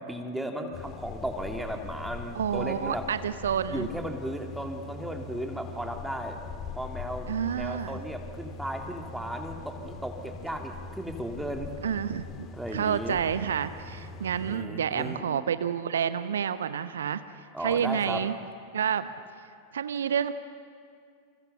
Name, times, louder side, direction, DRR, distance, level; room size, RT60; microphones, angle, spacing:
voice 1, 0.0-3.1 3.7-6.4 6.8-11.7 12.5-13.2 14.4-15.3 17.5-18.2, equal, 5° right, 3 dB, 3.0 m, -35 dB
sound 1, 0.7-14.6, left 3 dB, 35° left, 2.0 m, -42 dB
voice 2, 2.4-3.9 7.3-8.0 11.8-12.5 12.7-17.2 17.6-18.3 18.7-19.1 19.7-20.3, right 8 dB, 65° right, 13 dB, 0.9 m, -29 dB
29.0 x 28.0 x 7.0 m, 2.2 s
figure-of-eight pair, 90°, 0 cm